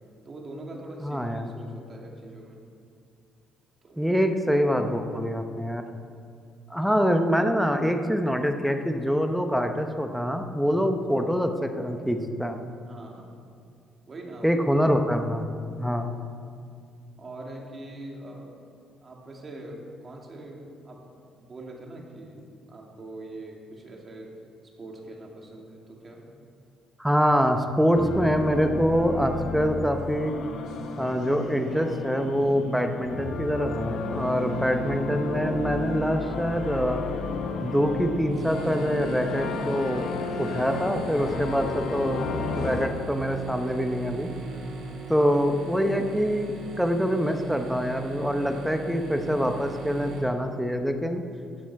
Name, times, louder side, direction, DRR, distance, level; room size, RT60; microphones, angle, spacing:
voice 1, 0.2-2.6 3.8-4.2 12.9-13.4 14.1-14.7 17.2-18.6 19.0-22.4 22.7-24.3 24.8-26.2 44.9-45.2, right 2 dB, 30° right, -1 dB, 2.2 m, -42 dB
voice 2, 1.0-1.5 4.0-5.8 6.7-12.6 14.4-15.4 15.7-16.1 27.0-30.4 31.0-37.0 37.6-40.1 40.4-44.3 45.1-51.2, equal, ahead, 5 dB, 0.8 m, -25 dB
sound 1, 27.9-42.9, left 3 dB, 65° left, 1.1 m, -33 dB
sound 2, 38.3-50.2, right 4 dB, 65° right, 2.8 m, -39 dB
13.5 x 9.0 x 4.7 m, 2.3 s
cardioid pair, 120°, 0 cm